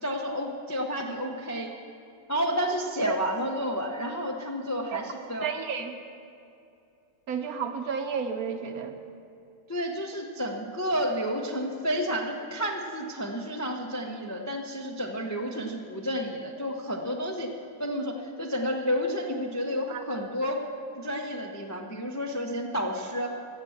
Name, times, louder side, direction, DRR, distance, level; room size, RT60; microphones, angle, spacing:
voice 1, 0.0-1.7 2.3-5.6 9.7-17.5 17.8-20.6 20.9-23.3, equal, 20° left, 1 dB, 0.4 m, -31 dB
voice 2, 5.4-5.9 7.3-8.9 19.9-20.0, right 6 dB, 60° right, 6 dB, 1.2 m, -32 dB
15.5 x 7.4 x 7.1 m, 2.6 s
omnidirectional pair, 1.9 m